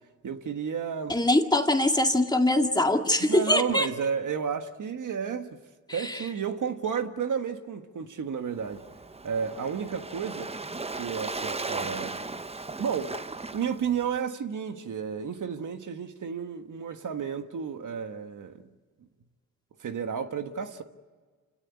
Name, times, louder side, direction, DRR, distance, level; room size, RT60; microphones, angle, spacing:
voice 1, 0.2-1.1 3.2-5.6 5.9-8.8 9.2-10.5 11.0-12.2 12.8-18.6 19.8-20.8, right 7 dB, 55° right, 1.6 m, -32 dB
voice 2, 1.1-3.9 5.9-6.2, left 1 dB, 10° left, 2.2 m, -23 dB
Waves surf, 8.5-14.2, right 3 dB, 15° right, 0.9 m, -37 dB
27.0 x 17.0 x 9.8 m
cardioid pair, 75°, 36 cm